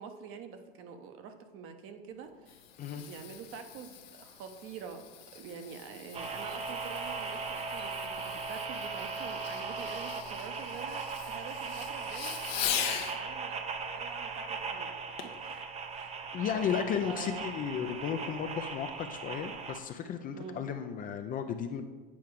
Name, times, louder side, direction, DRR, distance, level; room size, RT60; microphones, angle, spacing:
voice 1, 0.0-2.6 2.9-5.0 5.3-13.6 13.9-15.0 15.2-16.1 16.5-16.6 17.0-17.5 20.3-20.6, right 6 dB, 45° right, 7 dB, 0.9 m, -46 dB
Fireworks, 2.2-13.2 15.2-15.5 16.0-16.1, left 9 dB, 65° left, 0.9 m, -41 dB
sound 1, 6.1-19.8, right 4 dB, 20° right, 0.6 m, -38 dB
voice 2, 16.3-21.8, left 8 dB, 25° left, 7 dB, 0.4 m, -34 dB
8.6 x 4.6 x 4.6 m, 1.3 s
hypercardioid pair, 95°, 32 cm